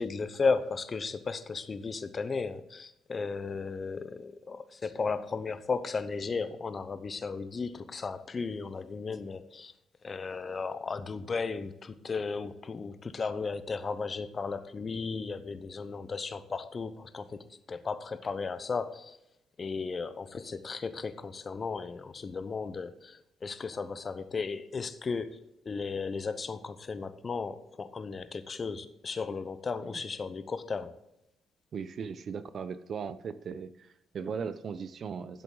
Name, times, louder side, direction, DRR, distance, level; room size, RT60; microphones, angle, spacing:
voice 1, 0.0-9.7 10.0-19.2 19.6-31.0, left 4 dB, 35° left, 12 dB, 0.8 m, -35 dB
voice 2, 31.7-35.4, right 6 dB, 55° right, 14 dB, 0.7 m, -38 dB
12.0 x 7.8 x 3.9 m, 0.83 s
cardioid pair, 90°, 0 cm